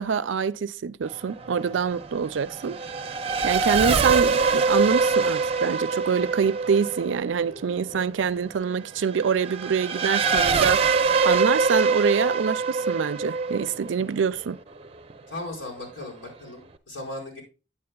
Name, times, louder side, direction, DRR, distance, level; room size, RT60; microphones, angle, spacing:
voice 1, 0.0-2.8 3.4-14.6, right 6 dB, 85° right, 0.4 m, -25 dB
Race car auto racing / Accelerating revving vroom, 1.0-15.1, right 4 dB, 30° right, 0.6 m, -25 dB
voice 2, 15.3-17.4, left 2 dB, 80° left, 4.9 m, -37 dB
9.7 x 8.7 x 2.3 m
head